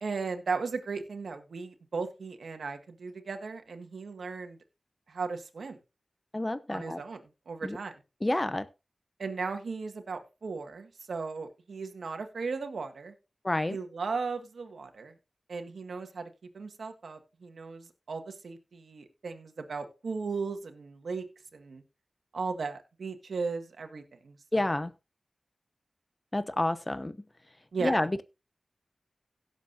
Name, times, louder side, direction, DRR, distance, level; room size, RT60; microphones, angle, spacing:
voice 1, 0.0-4.6 5.1-5.8 6.7-7.2 7.5-8.0 9.2-13.1 13.7-15.1 15.5-21.2 21.5-21.8 22.3-24.7 27.7-28.0, right 4 dB, 90° right, 1.7 m, -36 dB
voice 2, 6.3-7.0 7.6-7.8 8.2-8.7 13.4-13.8 24.5-24.9 26.3-27.2 27.8-28.2, left 1 dB, 25° left, 0.9 m, -29 dB
17.0 x 7.3 x 2.7 m
wide cardioid pair, 60°, 0 cm